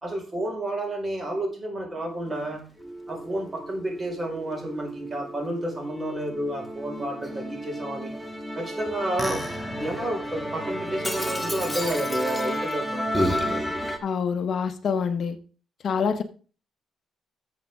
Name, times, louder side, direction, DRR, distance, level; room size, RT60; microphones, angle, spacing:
voice 1, 0.0-2.6 3.1-8.1 8.6-9.4 9.8-13.6, right 1 dB, 25° right, 1 dB, 4.8 m, -30 dB
Musical instrument, 2.8-14.0, equal, ahead, 1.6 m, -31 dB
voice 2, 14.0-15.4 15.8-16.2, left 6 dB, 55° left, 10 dB, 0.8 m, -26 dB
12.0 x 7.3 x 3.6 m, 0.38 s
cardioid pair, 90°, 0 cm